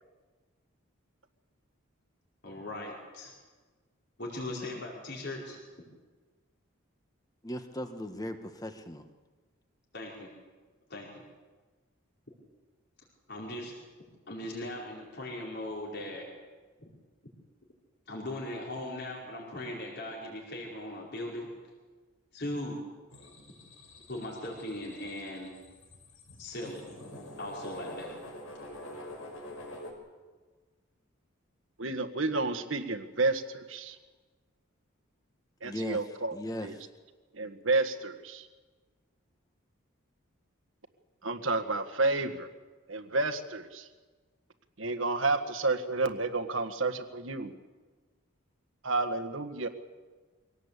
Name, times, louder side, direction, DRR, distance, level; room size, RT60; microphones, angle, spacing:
voice 1, 2.4-3.3 4.2-5.6 9.9-10.3 10.9-11.2 13.3-13.7 14.3-16.2 16.8-16.9 18.1-21.5 22.3-22.8 24.1-25.5 26.4-26.8 27.4-28.1, left 1 dB, 55° left, -3 dB, 4.9 m, -39 dB
voice 2, 7.4-9.1 35.6-36.0 36.3-36.9, left 1 dB, 20° left, 7 dB, 1.5 m, -38 dB
sound 1, 23.1-29.9, left 1 dB, 80° left, 5.8 m, -46 dB
voice 3, 31.8-34.0 35.6-36.3 36.6-36.8 37.3-38.5 41.2-42.5 42.9-43.9 44.8-47.5 48.8-49.7, right 3 dB, 70° right, 7 dB, 1.7 m, -30 dB
24.0 x 18.0 x 8.4 m, 1.4 s
head